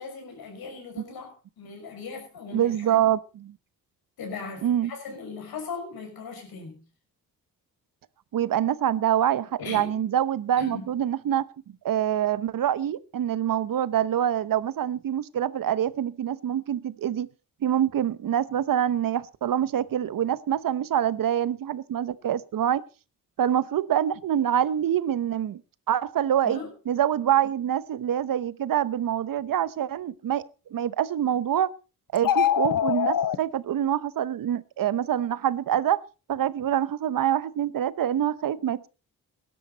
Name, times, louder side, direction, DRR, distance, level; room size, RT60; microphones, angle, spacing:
voice 1, 0.0-3.0 4.2-6.8 9.6-9.9 10.6-10.9 26.4-26.7, left 4 dB, 85° left, 6.3 m, -38 dB
voice 2, 2.5-3.6 4.6-4.9 8.3-11.5 11.8-17.3 17.6-22.8 23.4-25.6 25.9-26.6 26.9-30.4 30.7-31.7 32.1-36.0 36.3-38.9, right 10 dB, 65° right, 0.9 m, -25 dB
sound 1, 32.2-33.4, left 10 dB, 65° left, 1.1 m, -23 dB
17.0 x 12.0 x 4.0 m
cardioid pair, 75°, 36 cm